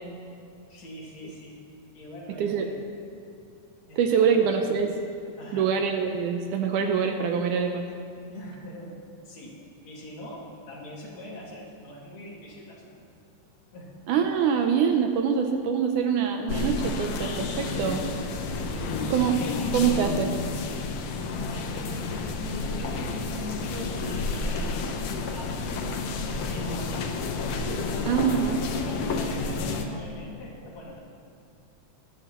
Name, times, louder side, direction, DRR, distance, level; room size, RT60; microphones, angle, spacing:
voice 1, 0.7-1.6 1.9-2.8 3.9-4.6 5.4-5.7 8.3-9.0 9.2-13.0 13.7-13.9 18.7-19.6 19.9-20.3 20.7-21.1 21.5-22.4 22.8-24.8 25.3-25.6 26.3-27.2 27.8-31.0, left 1 dB, 55° left, -4 dB, 3.3 m, -42 dB
voice 2, 4.0-5.0 5.5-7.8 14.1-18.0 19.1-19.4 19.7-20.3 28.1-28.6, right 7 dB, 75° right, 4 dB, 2.0 m, -24 dB
sound 1, 16.5-29.8, left 3 dB, 80° left, 1.4 m, -30 dB
19.5 x 12.0 x 3.1 m, 2.5 s
omnidirectional pair, 3.9 m